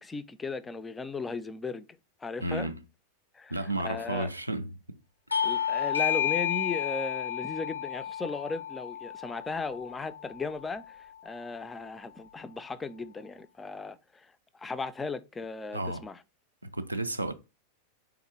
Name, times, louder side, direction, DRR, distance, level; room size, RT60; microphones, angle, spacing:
voice 1, 0.0-1.9 2.2-2.7 3.3-4.3 5.4-16.2, left 4 dB, 15° left, 0.3 m, -37 dB
voice 2, 2.4-2.8 3.5-5.0 15.7-16.1 16.6-17.3, right 1 dB, 85° right, 0.4 m, -32 dB
Bell / Doorbell, 5.3-10.4, left 9 dB, 85° left, 0.5 m, -31 dB
3.8 x 3.0 x 4.4 m
figure-of-eight pair, 90°, 0 cm